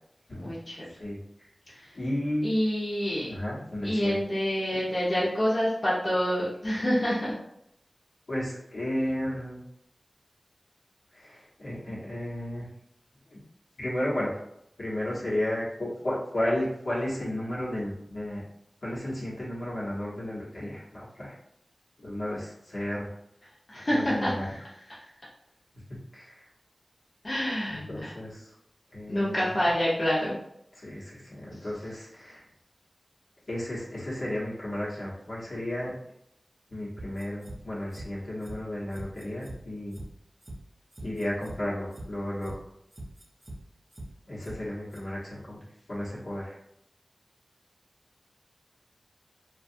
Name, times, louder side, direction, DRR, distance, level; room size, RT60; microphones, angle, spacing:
voice 1, 0.3-0.9 1.7-2.0 2.4-3.3 3.8-7.4 23.7-24.6 24.9-25.1 27.2-28.1 29.1-30.4, equal, 45° left, -7 dB, 0.8 m, -27 dB
voice 2, 1.9-2.5 3.3-4.2 8.3-9.6 11.1-12.7 13.3-13.4 13.8-14.4 14.8-18.4 18.8-21.3 22.0-23.1 23.9-24.5 26.1-26.5 27.7-28.5 28.9-29.5 30.8-32.5 33.5-35.9 36.7-40.0 41.0-42.7 44.3-45.6 45.9-46.6, left 1 dB, 70° left, -7 dB, 1.0 m, -33 dB
sound 1, 37.0-37.6 37.9-38.1 38.4-38.6 38.9-39.6 39.9-40.1 40.4-40.6 40.9-41.6 41.9-42.1 42.4-42.6 42.9-43.6 43.9-44.1 44.4-44.6 44.9-45.0, right 1 dB, 45° right, 0.6 m, -41 dB
2.5 x 2.3 x 2.6 m, 0.78 s
wide cardioid pair, 50°, 0 cm